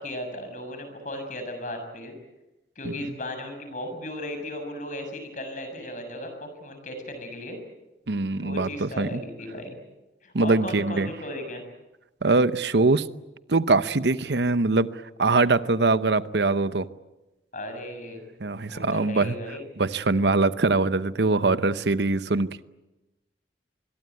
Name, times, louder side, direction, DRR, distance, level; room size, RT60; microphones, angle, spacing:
voice 1, 0.0-2.2 2.7-7.6 8.4-9.8 10.2-11.6 17.5-18.2 18.7-19.6, left 1 dB, 45° left, 6 dB, 6.7 m, -36 dB
voice 2, 8.1-9.2 10.3-11.1 12.2-13.1 13.5-16.9 18.4-19.3 19.8-22.6, right 3 dB, 70° right, 14 dB, 0.9 m, -23 dB
25.5 x 22.5 x 9.4 m, 1.0 s
head